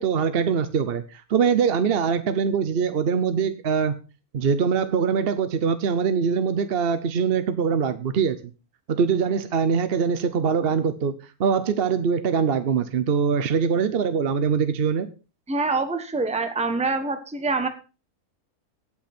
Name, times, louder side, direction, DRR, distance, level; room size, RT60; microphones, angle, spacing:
voice 1, 0.0-3.9 4.3-8.4 8.9-11.1 11.4-15.1, right 6 dB, 50° right, 11 dB, 0.8 m, -23 dB
voice 2, 15.5-17.7, right 3 dB, 5° right, 8 dB, 1.0 m, -25 dB
18.0 x 6.0 x 4.3 m, 0.34 s
omnidirectional pair, 1.6 m